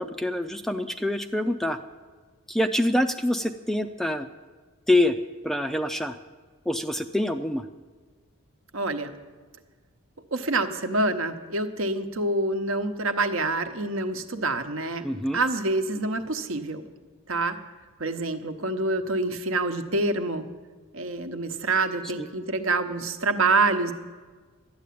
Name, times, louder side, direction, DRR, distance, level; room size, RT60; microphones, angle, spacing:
voice 1, 0.0-1.8 2.5-4.3 4.9-5.2 5.4-6.2 6.7-7.6 15.0-15.4, left 1 dB, ahead, 8 dB, 0.3 m, -25 dB
voice 2, 8.7-9.1 10.3-16.8 17.3-17.6 18.0-20.5 20.9-23.9, right 2 dB, 65° right, 8 dB, 1.0 m, -26 dB
12.0 x 9.3 x 8.5 m, 1.4 s
head